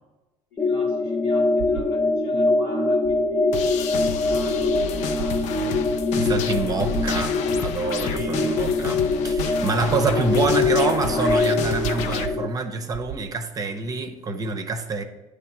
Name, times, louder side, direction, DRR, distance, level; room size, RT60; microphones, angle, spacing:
voice 1, 0.5-5.7 6.4-7.0 8.0-9.4 9.7-10.6, left 2 dB, 85° left, -3 dB, 2.1 m, -43 dB
sound 1, 0.6-12.5, left 3 dB, 15° left, 0.6 m, -23 dB
sound 2, 1.6-1.9 3.0-3.4 3.8-12.5 12.9-13.3, right 9 dB, 70° right, 0.5 m, -38 dB
sound 3, 3.5-12.3, left 6 dB, 70° left, 0.6 m, -31 dB
voice 2, 6.2-15.0, right 4 dB, 30° right, 6 dB, 0.8 m, -26 dB
9.4 x 3.5 x 4.8 m, 1.1 s
supercardioid pair, 100°, 13 cm